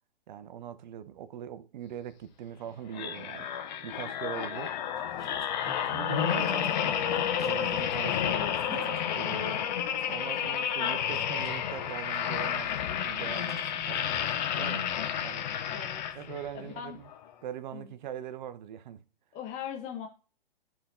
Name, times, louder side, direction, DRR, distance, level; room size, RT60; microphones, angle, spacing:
voice 1, 0.3-3.5 3.8-4.8 5.7-14.1 14.6-14.9 15.2-15.5 16.1-17.1 17.4-19.0, right 10 dB, 50° right, 0.8 m, -41 dB
sound 1, 2.9-16.5 17.0-17.2, left 9 dB, 50° left, 1.0 m, -31 dB
sound 2, 4.9-14.6, left 1 dB, ahead, 1.5 m, -53 dB
voice 2, 15.7-16.0 16.5-17.0 17.7-17.9 19.3-20.1, left 8 dB, 25° left, 0.9 m, -39 dB
12.0 x 4.3 x 2.6 m
hypercardioid pair, 125°, 29 cm